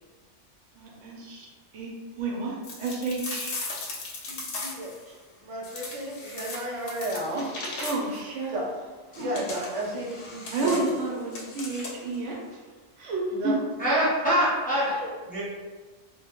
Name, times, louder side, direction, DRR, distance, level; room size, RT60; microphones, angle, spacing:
voice 1, 0.7-3.6 7.3-7.5 7.8-8.5 9.1-9.3 10.5-12.6 13.0-13.5 14.9-15.1, right 3 dB, 85° right, -1 dB, 0.9 m, -31 dB
sound 1, 2.6-5.0 5.6-8.3 9.1-12.2, left 2 dB, 70° left, 0.8 m, -38 dB
voice 2, 4.3-7.4 8.5-8.6 9.2-10.8 13.3-13.6, right 1 dB, 45° right, -5 dB, 0.4 m, -33 dB
voice 3, 13.8-14.9 15.3-15.4, equal, 10° left, -10 dB, 0.5 m, -24 dB
2.2 x 2.1 x 2.8 m, 1.4 s
omnidirectional pair, 1.2 m